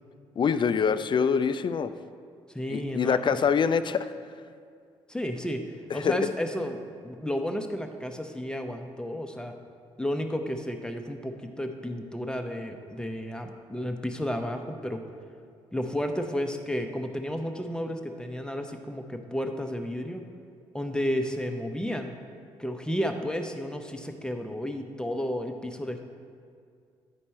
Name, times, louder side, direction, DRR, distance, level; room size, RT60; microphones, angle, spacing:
voice 1, 0.4-1.9 2.7-4.1 5.9-6.1, left 6 dB, 40° left, 12 dB, 0.4 m, -25 dB
voice 2, 2.5-3.4 5.1-6.8 7.0-9.6 10.0-15.0 15.7-20.2 20.7-22.1 22.6-26.0, equal, 5° left, 5 dB, 0.7 m, -32 dB
9.8 x 4.4 x 4.3 m, 2.2 s
supercardioid pair, 55°, 12 cm